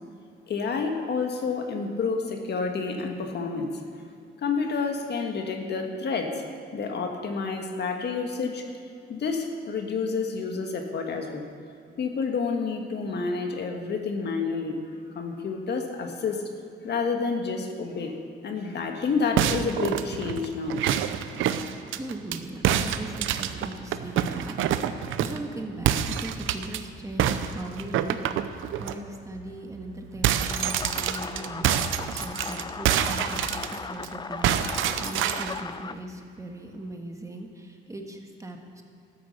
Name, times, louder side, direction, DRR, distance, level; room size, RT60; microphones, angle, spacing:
voice 1, 0.5-3.8 4.4-6.4 6.7-8.7 9.1-11.5 12.0-14.8 15.1-16.4 16.8-18.1 18.4-20.8, left 4 dB, 60° left, 4 dB, 1.6 m, -29 dB
sound 1, 19.4-22.4 22.6-25.5 25.8-26.8 27.2-28.9 29.4-29.5 29.8-34.1 34.4-35.6, right 10 dB, 85° right, 0.7 m, -27 dB
voice 2, 22.0-28.2 28.5-38.8, right 1 dB, 15° right, 3 dB, 1.5 m, -39 dB
sound 2, 30.5-35.9, left 4 dB, 20° left, 0.5 m, -37 dB
13.0 x 9.5 x 6.8 m, 2.4 s
cardioid pair, 90°, 20 cm